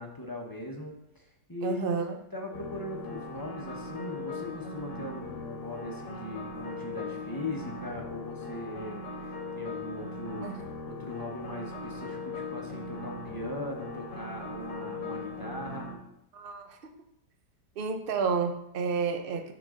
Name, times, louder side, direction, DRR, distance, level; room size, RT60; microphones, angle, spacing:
voice 1, 0.0-1.9 2.3-15.9, left 1 dB, 20° left, -1 dB, 0.6 m, -40 dB
voice 2, 1.6-2.2 10.4-10.7 16.3-16.8 17.8-19.5, right 5 dB, 50° right, 6 dB, 0.6 m, -30 dB
sound 1, 2.5-15.9, left 2 dB, 90° left, 2.0 m, -39 dB
11.0 x 3.9 x 3.7 m, 0.77 s
omnidirectional pair, 1.8 m